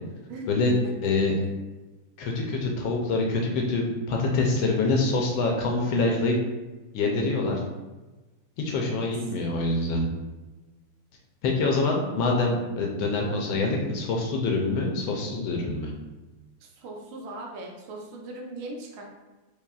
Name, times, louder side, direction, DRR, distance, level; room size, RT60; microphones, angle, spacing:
voice 1, 0.3-0.9 8.8-8.9 9.2-9.3 16.6-19.0, right 1 dB, 85° right, 0 dB, 1.6 m, -39 dB
voice 2, 2.2-6.4 6.9-7.6 8.6-10.0 11.4-15.9, left 3 dB, 75° left, 0 dB, 1.2 m, -25 dB
4.7 x 2.7 x 2.3 m, 1.1 s
omnidirectional pair, 2.4 m